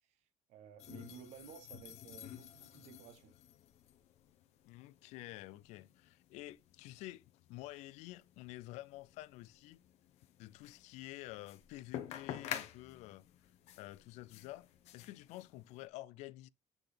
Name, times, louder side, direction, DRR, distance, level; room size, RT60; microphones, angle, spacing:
voice 1, 0.0-3.3, right 8 dB, 75° right, 1.0 m, -55 dB
sound 1, 0.8-15.9, left 11 dB, 70° left, 1.0 m, -50 dB
voice 2, 4.6-7.2 7.5-9.8 10.4-13.2 13.8-14.7 14.9-16.5, left 17 dB, 85° left, 0.4 m, -49 dB
8.9 x 3.9 x 3.3 m
cardioid pair, 160°, 12 cm